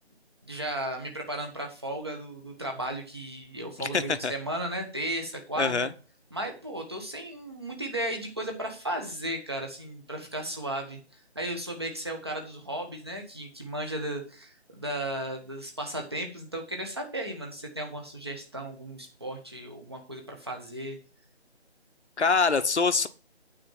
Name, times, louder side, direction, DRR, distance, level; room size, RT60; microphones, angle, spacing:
voice 1, 0.4-5.7 6.3-21.0, right 1 dB, 25° right, 2 dB, 1.3 m, -35 dB
voice 2, 3.8-4.3 5.6-5.9 22.2-23.1, left 4 dB, 80° left, 10 dB, 1.1 m, -24 dB
8.7 x 4.5 x 7.4 m, 0.35 s
figure-of-eight pair, 180°, 33 cm